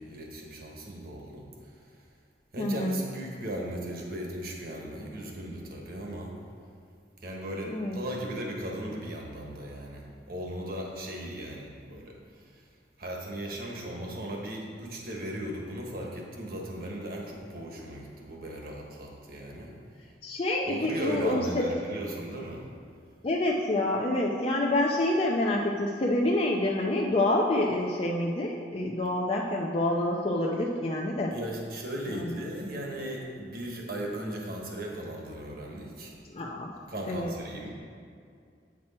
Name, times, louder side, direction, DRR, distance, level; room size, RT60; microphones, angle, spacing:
voice 1, 0.0-1.9 2.5-6.3 7.2-12.7 13.0-19.7 20.7-22.6 31.3-36.1 36.9-37.7, right 1 dB, 55° right, -1 dB, 1.3 m, -37 dB
voice 2, 2.6-3.0 7.7-8.0 20.2-21.7 23.2-31.3 32.1-32.3 36.3-36.7 37.1-37.3, left 1 dB, 35° left, -2 dB, 0.5 m, -27 dB
8.6 x 6.1 x 4.3 m, 2.3 s
head